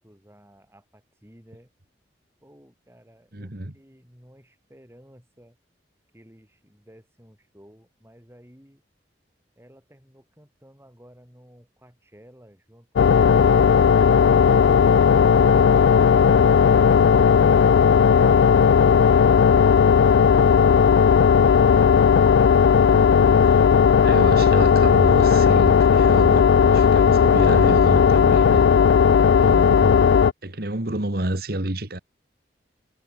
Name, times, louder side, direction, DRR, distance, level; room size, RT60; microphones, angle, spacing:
voice 1, 0.0-1.7 2.4-5.6 6.1-8.8 9.6-12.9 16.1-16.6 17.0-21.2, equal, 15° right, 6.2 m, -53 dB
voice 2, 3.3-3.7 22.8-23.7 24.0-28.7 29.4-30.2 30.4-32.0, right 1 dB, 55° right, 2.1 m, -29 dB
sound 1, 13.0-30.3, left 6 dB, 75° left, 0.3 m, -15 dB
head